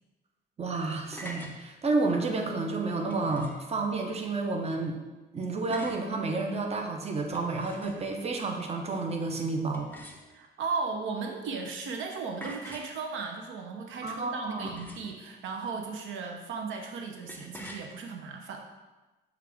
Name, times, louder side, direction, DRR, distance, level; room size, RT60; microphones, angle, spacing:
voice 1, 0.6-5.0 5.3-9.9 14.0-14.7, right 3 dB, 30° right, 3 dB, 0.6 m, -30 dB
sound 1, 1.1-1.6 3.1-3.7 5.7-6.1 7.2-8.2 9.7-10.6 12.4-13.0 14.7-15.2 17.3-17.9, equal, 10° left, 0.6 m, -45 dB
voice 2, 10.3-18.7, right 4 dB, 80° right, 3 dB, 0.6 m, -36 dB
6.6 x 2.4 x 3.3 m, 1.1 s
cardioid pair, 90°, 20 cm